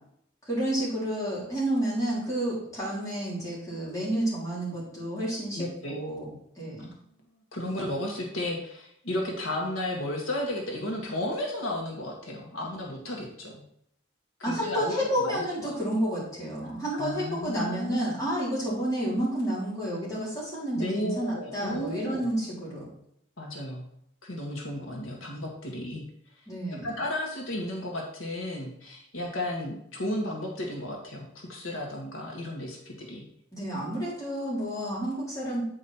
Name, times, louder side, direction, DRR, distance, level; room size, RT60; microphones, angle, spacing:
voice 1, 0.4-6.9 14.4-22.9 26.5-26.9 33.5-35.6, right 1 dB, 15° left, -7 dB, 3.5 m, -30 dB
voice 2, 5.5-5.9 6.8-6.9 7.5-13.6 14.5-15.7 16.9-18.2 20.7-22.2 23.4-23.8 24.2-26.0 26.8-33.2, left 1 dB, 85° left, -1 dB, 1.6 m, -33 dB
8.6 x 5.1 x 4.3 m, 0.73 s
head